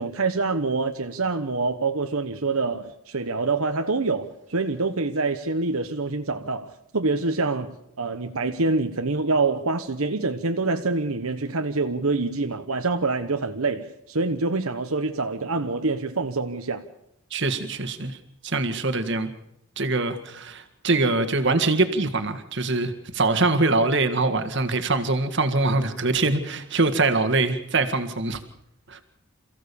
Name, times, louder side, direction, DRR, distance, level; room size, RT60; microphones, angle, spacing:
voice 1, 0.0-16.8, right 3 dB, 75° right, 1.1 m, -26 dB
voice 2, 17.3-18.2 18.4-19.3 19.8-28.4 28.9-29.0, right 3 dB, 55° right, 1.8 m, -23 dB
28.0 x 15.5 x 7.0 m
head